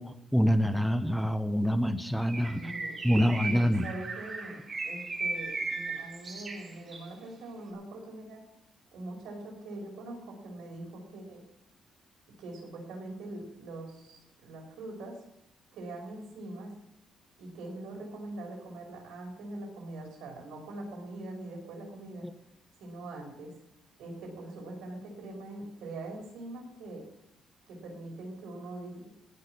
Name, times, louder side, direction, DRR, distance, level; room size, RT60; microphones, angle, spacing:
voice 1, 0.0-2.6 3.0-3.9, equal, ahead, 11 dB, 1.0 m, -26 dB
Bird, 2.2-7.1, right 3 dB, 40° right, 3.2 m, -37 dB
voice 2, 2.6-4.6 4.8-8.4 8.9-11.4 12.4-15.2 15.7-16.7 17.4-22.3 22.8-23.5 24.0-27.0 27.7-29.1, right 2 dB, 85° right, 1 dB, 5.1 m, -42 dB
17.5 x 6.3 x 8.6 m, 0.76 s
cardioid pair, 90°, 0 cm